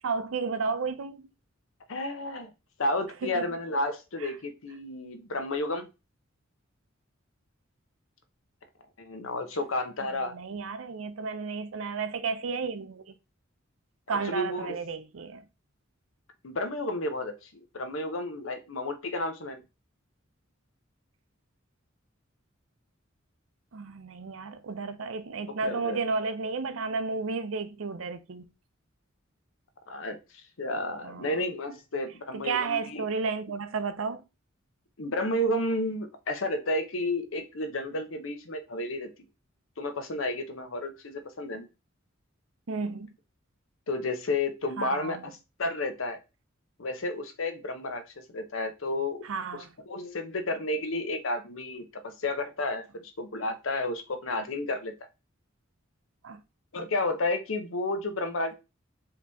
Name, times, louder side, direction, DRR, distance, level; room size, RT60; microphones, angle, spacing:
voice 1, 0.0-1.3 3.2-3.5 4.2-4.3 10.1-13.1 14.1-15.5 23.7-28.5 31.0-31.4 32.3-34.2 42.7-43.1 44.8-45.2 49.2-49.7 56.2-56.4, right 4 dB, 70° right, 0.5 m, -32 dB
voice 2, 1.9-2.5 2.8-5.9 9.0-10.3 14.2-14.8 16.4-19.6 25.6-26.0 29.9-30.2 30.6-33.1 35.0-39.1 39.8-41.7 43.9-45.2 45.6-46.2 46.8-48.0 48.3-49.2 49.9-54.9 56.7-58.5, left 2 dB, 70° left, 0.8 m, -31 dB
4.8 x 2.9 x 3.4 m
head